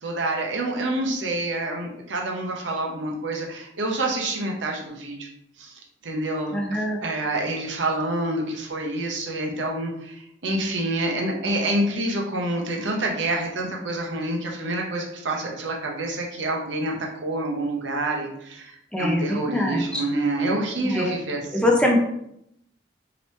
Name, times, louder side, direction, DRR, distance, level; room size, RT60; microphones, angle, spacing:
voice 1, 0.0-5.3 5.6-16.9 17.2-21.7, right 2 dB, 75° right, 0 dB, 0.7 m, -27 dB
voice 2, 6.5-7.0 18.9-20.0 20.8-21.2 21.5-22.0, left 1 dB, 5° left, -1 dB, 0.5 m, -23 dB
3.0 x 2.9 x 3.1 m, 0.76 s
head